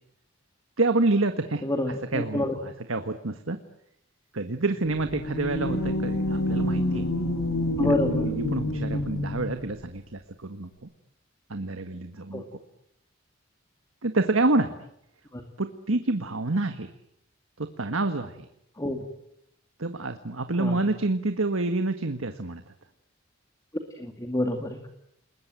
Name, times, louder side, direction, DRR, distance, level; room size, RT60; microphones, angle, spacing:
voice 1, 0.8-1.6 2.1-3.6 4.3-7.1 7.8-10.9 11.5-12.4 14.0-14.7 15.6-16.9 17.6-18.5 19.8-22.7, right 2 dB, 85° right, 8 dB, 1.6 m, -28 dB
voice 2, 1.6-2.5 7.8-8.3 8.9-9.0 12.3-12.4 15.3-15.4 18.8-19.1 20.6-20.8 24.0-24.9, left 1 dB, 15° left, 5 dB, 2.4 m, -28 dB
sound 1, 4.9-9.7, left 1 dB, 75° left, 7.1 m, -28 dB
30.0 x 21.0 x 9.2 m, 0.77 s
head